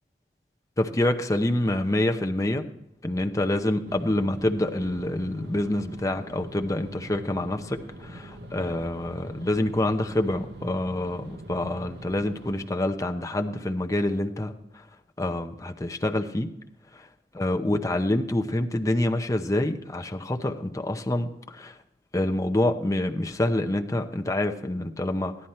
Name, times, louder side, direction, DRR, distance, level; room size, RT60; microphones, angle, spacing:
voice 1, 0.8-2.6 3.0-14.5 15.2-16.5 17.3-21.7 22.1-25.3, left 1 dB, 20° left, 5 dB, 0.8 m, -27 dB
sound 1, 3.8-12.7, right 1 dB, 70° right, 1.3 m, -43 dB
16.0 x 11.0 x 4.3 m, 0.84 s
head